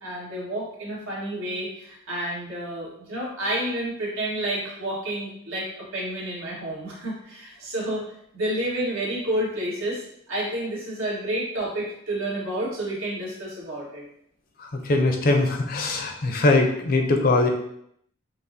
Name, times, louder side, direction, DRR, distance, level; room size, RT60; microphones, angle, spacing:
voice 1, 0.0-8.0 8.3-14.0, right 1 dB, 90° right, -6 dB, 1.5 m, -30 dB
voice 2, 14.6-17.5, left 2 dB, 45° left, 3 dB, 0.5 m, -21 dB
5.6 x 2.0 x 2.7 m, 0.72 s
head